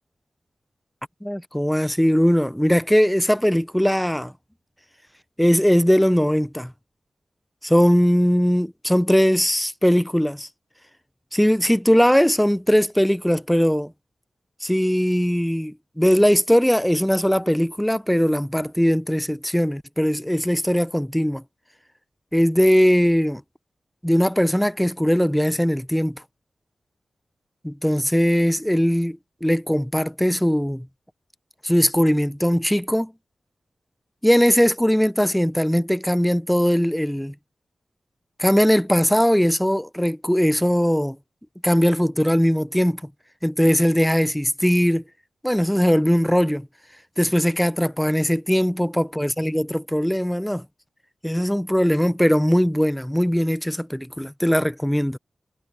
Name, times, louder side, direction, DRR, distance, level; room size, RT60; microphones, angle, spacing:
voice 1, 1.2-4.3 5.4-6.7 7.6-10.5 11.3-13.9 14.6-21.4 22.3-23.4 24.0-26.2 27.6-30.9 31.6-33.1 34.2-37.3 38.4-41.2 41.6-43.0 43.4-45.0 45.4-46.7 47.2-50.6 51.2-55.2, equal, 5° left, 0.7 m, -20 dB
cardioid pair, 45°, 0 cm